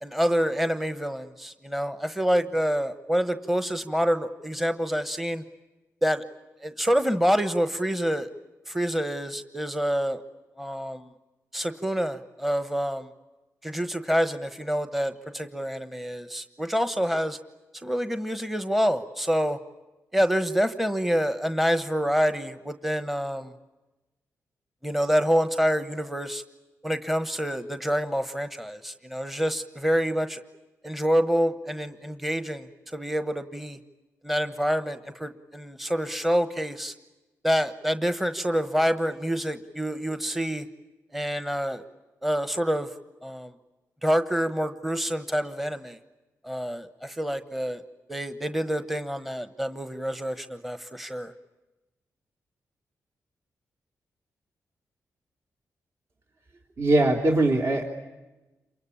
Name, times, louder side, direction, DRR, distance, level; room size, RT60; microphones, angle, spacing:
voice 1, 0.0-5.4 6.0-6.2 6.6-8.3 8.7-10.2 10.6-11.1 11.5-13.1 13.6-17.4 17.7-19.6 20.1-23.5 24.8-26.4 26.8-30.4 30.8-33.8 34.2-36.9 37.4-40.7 41.1-41.8 42.2-42.9 43.2-43.5 44.0-46.0 46.4-47.8 48.1-51.3, equal, 5° right, 10 dB, 1.1 m, -27 dB
voice 2, 56.8-58.0, right 2 dB, 50° right, 1 dB, 3.4 m, -21 dB
28.0 x 24.0 x 8.7 m, 1.1 s
cardioid pair, 100°, 6 cm